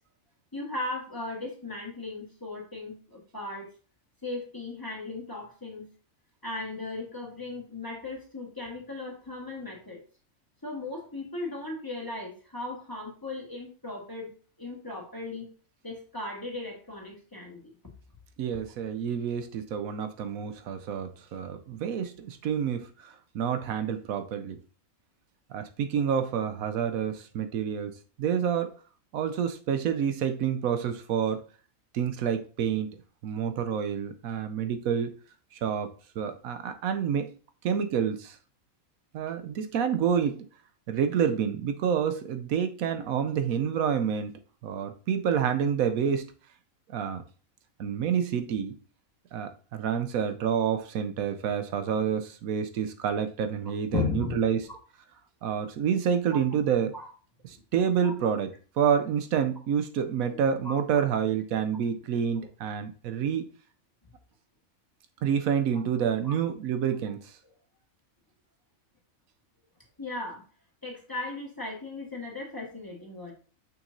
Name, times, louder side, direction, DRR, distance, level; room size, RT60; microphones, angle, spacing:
voice 1, 0.5-3.7 4.2-5.9 6.4-10.0 10.6-14.3 14.6-15.5 15.8-17.7 53.9-54.4 56.3-56.4 56.9-57.1 58.0-58.1 60.6-61.0 66.2-66.4 70.0-70.4 70.8-73.3, left 3 dB, 15° left, 1.6 m, -36 dB
voice 2, 18.4-24.6 25.5-28.7 29.1-31.4 31.9-35.1 35.6-37.3 37.6-38.4 39.1-40.4 40.9-44.3 44.6-46.3 46.9-47.2 47.8-48.7 49.3-54.7 55.4-56.9 57.4-63.4 65.2-67.2, right 8 dB, 80° right, 1.1 m, -28 dB
6.4 x 5.9 x 2.6 m
omnidirectional pair, 1.5 m